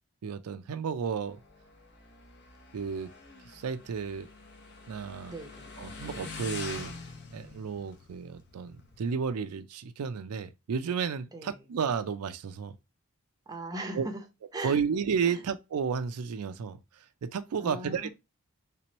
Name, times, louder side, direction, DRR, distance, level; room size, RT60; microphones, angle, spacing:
voice 1, 0.2-1.4 2.7-3.1 3.5-4.3 4.9-5.3 5.8-6.9 7.3-12.8 14.0-14.1 14.6-18.1, right 6 dB, 85° right, 0.4 m, -32 dB
Motorcycle, 1.0-9.3, left 3 dB, 50° left, 0.8 m, -45 dB
voice 2, 5.3-5.7 11.3-11.6 13.5-14.2 14.5-14.8 15.2-15.4 17.6-18.1, right 2 dB, 15° right, 0.6 m, -39 dB
3.4 x 3.0 x 2.8 m
head